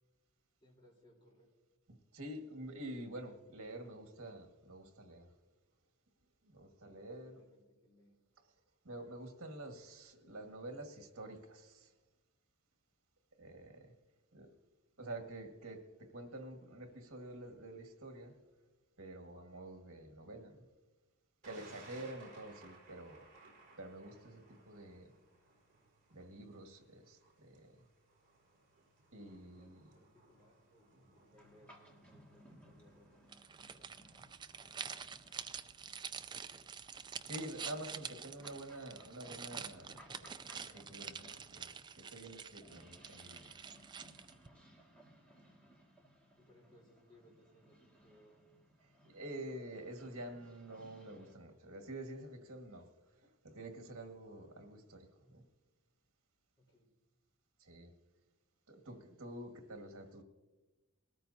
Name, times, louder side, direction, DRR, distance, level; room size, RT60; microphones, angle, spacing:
voice 1, 0.6-1.5 6.8-8.2 29.5-35.0 35.8-36.1 44.3-44.7 45.6-45.7 46.4-48.6 56.6-56.9, left 1 dB, 20° left, -4 dB, 3.5 m, -67 dB
voice 2, 2.1-5.3 6.4-7.4 8.8-11.9 13.4-13.9 14.3-14.5 15.0-18.4 19.0-20.6 21.4-23.3 23.8-25.1 26.1-27.8 29.1-29.9 37.2-43.5 49.0-52.9 53.2-55.4 57.6-57.9 58.7-60.2, right 1 dB, 70° right, 4 dB, 1.7 m, -48 dB
Thunder, 21.4-37.7, right 3 dB, 35° right, 4.4 m, -63 dB
sound 1, 31.4-51.3, equal, 5° left, 1.9 m, -63 dB
sound 2, 33.3-44.5, right 6 dB, 20° right, 0.3 m, -47 dB
20.5 x 13.5 x 2.7 m, 1.2 s
head